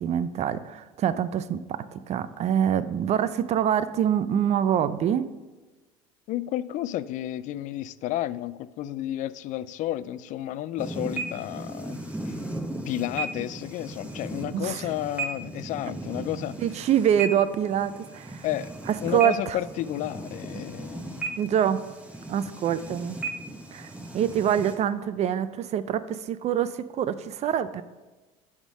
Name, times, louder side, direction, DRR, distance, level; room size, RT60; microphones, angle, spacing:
voice 1, 0.0-5.3 14.5-14.9 16.6-18.5 18.9-19.6 21.4-21.9 22.3-23.2 23.7-27.8, right 9 dB, 45° right, 14 dB, 0.5 m, -25 dB
voice 2, 6.3-12.0 12.3-12.4 12.8-16.6 18.4-18.7 19.0-21.4, left 13 dB, 50° left, 17 dB, 0.4 m, -32 dB
sound 1, 10.8-24.7, right 3 dB, 10° right, 1.2 m, -36 dB
11.0 x 3.6 x 5.4 m, 1.2 s
supercardioid pair, 95°, 16 cm